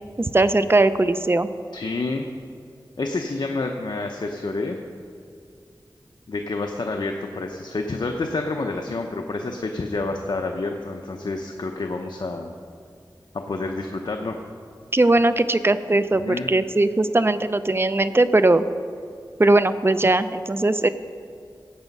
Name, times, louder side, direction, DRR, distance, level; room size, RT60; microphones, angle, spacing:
voice 1, 0.2-1.5 14.9-18.6 19.4-20.9, right 2 dB, 30° right, 12 dB, 0.5 m, -19 dB
voice 2, 1.7-2.3 3.0-4.8 6.3-12.5 13.3-14.4 16.2-16.5, left 3 dB, 70° left, 3 dB, 0.7 m, -28 dB
15.5 x 8.2 x 5.4 m, 2.3 s
wide cardioid pair, 70°, 8 cm